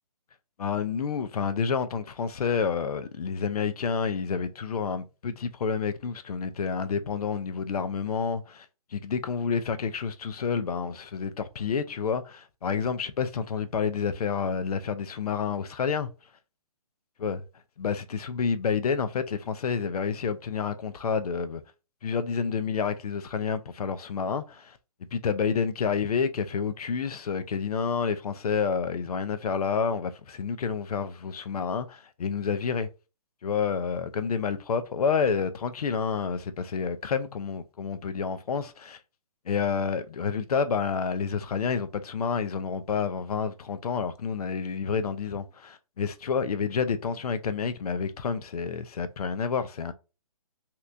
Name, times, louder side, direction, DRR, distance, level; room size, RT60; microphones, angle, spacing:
voice 1, 0.6-8.7 8.9-16.1 17.2-17.4 17.8-21.6 22.0-24.8 25.1-32.9 33.4-39.0 39.5-49.9, left 6 dB, 80° left, 0.5 m, -29 dB
3.4 x 2.9 x 2.5 m
hypercardioid pair, 160°, 19 cm